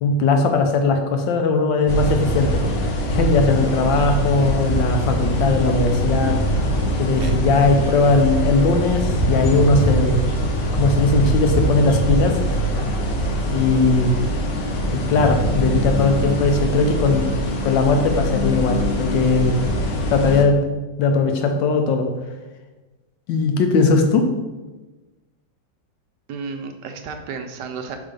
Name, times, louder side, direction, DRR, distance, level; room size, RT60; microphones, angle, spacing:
voice 1, 0.0-2.6 3.1-6.4 7.0-10.2 10.7-12.6 13.5-14.2 14.9-17.3 17.6-19.6 20.1-20.7 21.0-22.1 23.3-24.3, left 3 dB, 75° left, 5 dB, 1.4 m, -19 dB
sound 1, 1.9-20.4, equal, 50° left, 1.0 m, -22 dB
voice 2, 26.3-28.0, right 5 dB, 75° right, 5 dB, 1.1 m, -32 dB
5.6 x 3.7 x 5.0 m, 1.2 s
omnidirectional pair, 2.1 m